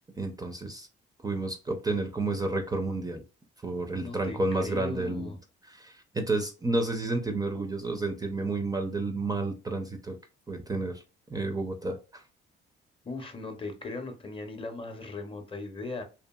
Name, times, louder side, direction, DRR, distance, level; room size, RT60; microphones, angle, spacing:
voice 1, 0.2-0.9 1.2-3.2 3.6-5.4 5.6-10.2 10.5-11.0 11.3-12.2, right 2 dB, 20° right, 0.4 m, -31 dB
voice 2, 3.9-5.4 13.0-16.0, left 3 dB, 25° left, 0.6 m, -38 dB
2.7 x 2.5 x 2.2 m
cardioid pair, 90°, 20 cm